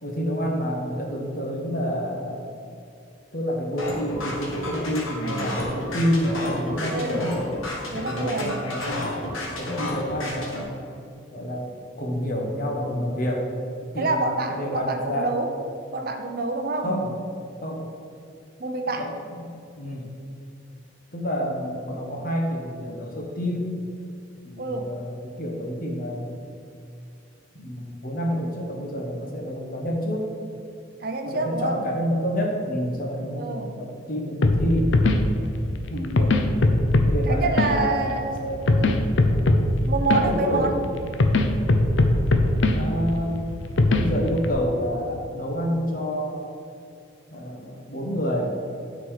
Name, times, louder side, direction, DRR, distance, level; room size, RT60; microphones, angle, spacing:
voice 1, 0.0-2.4 3.3-7.4 8.1-10.7 11.3-11.7 12.0-13.5 13.9-15.3 16.8-17.1 17.6-17.9 18.9-20.1 21.1-23.7 24.4-26.4 27.6-30.3 31.2-34.9 35.4-35.5 35.9-36.7 37.0-38.7 40.1-40.9 42.7-43.5 43.9-46.5 47.3-48.5, equal, 45° left, 0 dB, 1.1 m, -28 dB
sound 1, 3.8-10.6, left 1 dB, 85° left, 1.5 m, -31 dB
voice 2, 6.9-7.3 7.9-8.6 13.9-15.5 15.9-16.9 18.6-19.1 24.6-24.9 31.0-31.8 33.4-33.7 37.3-39.0 39.9-40.7, right 3 dB, 45° right, 5 dB, 0.6 m, -27 dB
sound 2, 34.4-44.5, left 2 dB, 65° left, 0.6 m, -22 dB
9.5 x 4.2 x 4.7 m, 2.5 s
head